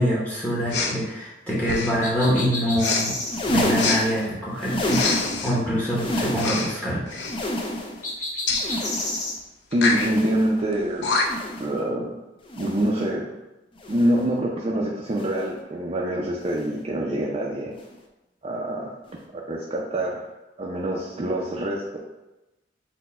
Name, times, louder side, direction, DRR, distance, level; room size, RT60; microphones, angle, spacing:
voice 1, 0.0-3.2 3.5-5.0 5.4-7.0, equal, 10° left, -6 dB, 0.9 m, -25 dB
Respiratory sounds, 0.7-1.0 1.6-2.0 2.8-3.0 3.8-4.0 4.9-5.5 6.3-6.7 7.1-7.4 8.5-8.7 9.7-10.1 10.7-10.8 11.0-11.5, left 4 dB, 70° left, 0.6 m, -25 dB
sound 1, 2.0-3.4 8.0-9.4, left 2 dB, 45° left, 1.3 m, -30 dB
sound 2, 3.2-5.6 5.8-6.8 7.1-8.1 8.5-9.4 9.8-10.6 11.1-11.8 12.5-13.0 13.8-14.3 15.1-15.5 16.5-16.8 17.8-18.0 19.1-19.2, left 1 dB, 30° left, 0.5 m, -29 dB
voice 2, 9.7-11.1 11.6-12.1 12.6-13.3 13.9-17.7 18.4-18.9 19.5-20.2 20.6-22.0, right 1 dB, 35° right, -3 dB, 0.5 m, -25 dB
4.3 x 2.2 x 4.1 m, 1.0 s
head